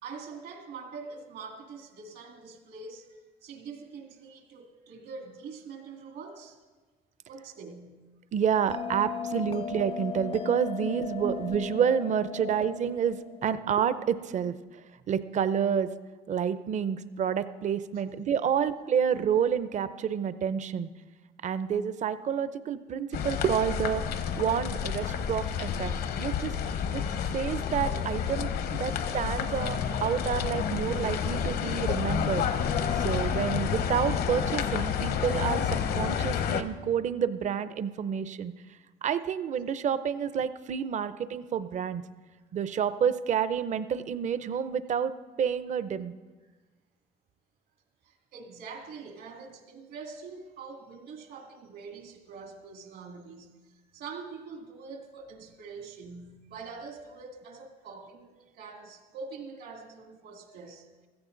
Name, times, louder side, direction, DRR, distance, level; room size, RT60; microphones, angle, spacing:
voice 1, 0.0-3.2 3.4-6.6 7.3-8.0 9.6-9.7 10.8-11.3 12.3-12.5 17.9-18.2 30.7-30.9 48.0-60.9, right 5 dB, 75° right, 3 dB, 2.3 m, -44 dB
voice 2, 8.3-14.6 15.1-15.9 16.3-20.9 21.4-24.0 24.3-25.9 26.2-26.6 26.9-27.0 27.3-28.5 28.8-32.5 33.0-38.5 39.0-42.0 42.5-45.1 45.4-46.1, right 8 dB, 45° right, 13 dB, 0.7 m, -29 dB
Bell, 8.7-13.8, left 8 dB, 35° left, 0.4 m, -37 dB
sound 1, 23.1-36.6, left 7 dB, 65° left, 0.9 m, -30 dB
15.5 x 14.0 x 3.9 m, 1.3 s
cardioid pair, 110°, 17 cm